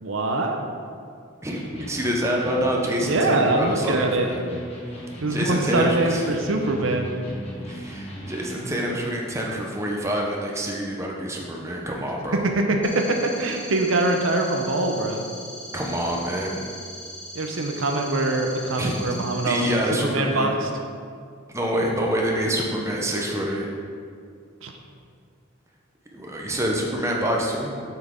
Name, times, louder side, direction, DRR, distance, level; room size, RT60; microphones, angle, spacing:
voice 1, 0.0-0.6 3.0-4.3 5.2-7.1 12.3-15.2 17.3-20.7 24.6-24.7, right 2 dB, 75° right, 3 dB, 0.7 m, -23 dB
voice 2, 1.4-4.3 5.3-6.2 7.7-12.4 15.7-16.6 18.8-19.0 19.4-20.5 21.5-23.7 26.1-27.7, equal, 15° right, -1 dB, 0.7 m, -26 dB
Electric guitar, 1.5-8.8, equal, 30° left, 1.5 m, -38 dB
sound 1, 12.8-19.7, equal, 5° left, 1.4 m, -40 dB
7.8 x 6.0 x 3.7 m, 2.3 s
head